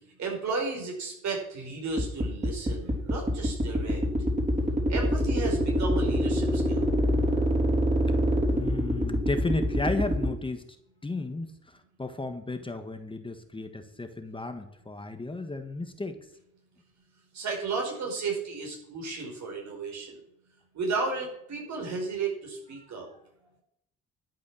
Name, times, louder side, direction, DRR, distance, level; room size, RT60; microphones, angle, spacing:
voice 1, 0.2-4.0 4.9-6.9 17.3-20.2 20.7-23.1, right 4 dB, 65° right, 1 dB, 5.3 m, -33 dB
sound 1, 2.0-10.3, equal, 25° right, 3.9 m, -26 dB
voice 2, 8.5-10.6 11.0-16.2 22.8-22.9, left 2 dB, 15° left, 7 dB, 1.4 m, -34 dB
12.0 x 8.5 x 6.3 m, 0.77 s
cardioid pair, 90°, 30 cm